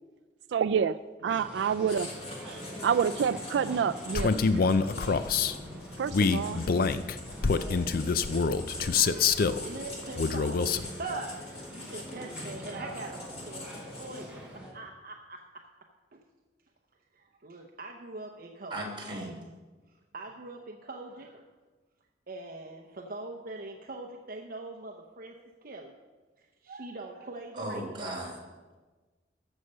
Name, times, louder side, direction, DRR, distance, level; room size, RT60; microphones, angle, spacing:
voice 1, 0.5-1.0 1.2-2.1 2.5-4.3 5.0-5.3 6.0-6.6, right 7 dB, 85° right, 12 dB, 0.3 m, -28 dB
sound 1, 1.3-14.7, equal, 5° right, 3.8 m, -44 dB
Writing, 1.9-14.5, left 2 dB, 35° left, 2.2 m, -45 dB
Male speech man speaking, 4.1-5.5 6.1-9.6 10.2-10.9, left 5 dB, 55° left, 0.5 m, -26 dB
voice 2, 8.8-14.4 14.7-15.4 16.1-16.2 17.1-18.8 20.1-21.4 22.3-25.3 25.6-25.9 26.6-28.0, right 2 dB, 55° right, 2 dB, 0.8 m, -42 dB
voice 3, 18.7-19.3 27.5-28.4, right 1 dB, 30° right, -2 dB, 3.2 m, -36 dB
14.5 x 6.5 x 5.5 m, 1.3 s
head